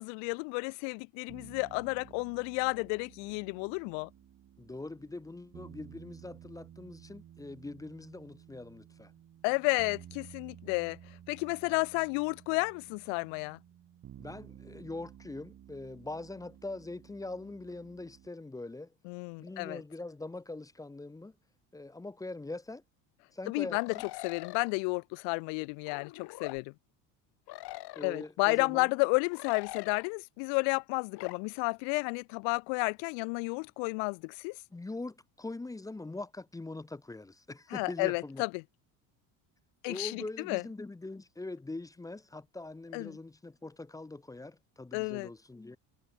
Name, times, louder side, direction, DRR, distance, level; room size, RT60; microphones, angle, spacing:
voice 1, 0.0-4.1 9.4-11.0 11.3-13.6 19.0-19.8 23.5-24.0 24.2-26.7 28.0-34.6 37.7-38.6 39.8-40.6 42.9-43.2 44.9-45.3, left 39 dB, 75° left, 0.6 m, -32 dB
sound 1, 1.3-18.3, right 10 dB, 35° right, 2.0 m, -54 dB
voice 2, 4.6-9.1 14.2-18.9 19.4-21.3 21.7-22.8 23.3-23.8 28.0-28.9 34.7-38.4 39.9-45.8, left 2 dB, 10° left, 0.7 m, -42 dB
sound 2, 23.7-24.7 25.9-26.6 27.5-28.3 29.3-30.1 31.1-31.4, left 18 dB, 55° left, 2.1 m, -44 dB
cardioid pair, 130°, 46 cm